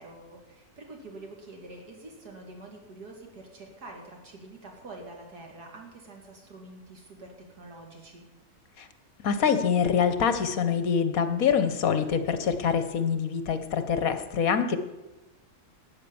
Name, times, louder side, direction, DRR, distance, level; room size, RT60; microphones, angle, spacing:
voice 1, 0.0-8.2, right 2 dB, 85° right, 1 dB, 2.9 m, -46 dB
voice 2, 9.2-14.8, left 7 dB, 65° left, 10 dB, 1.4 m, -25 dB
13.0 x 9.1 x 7.0 m, 1.1 s
omnidirectional pair, 1.7 m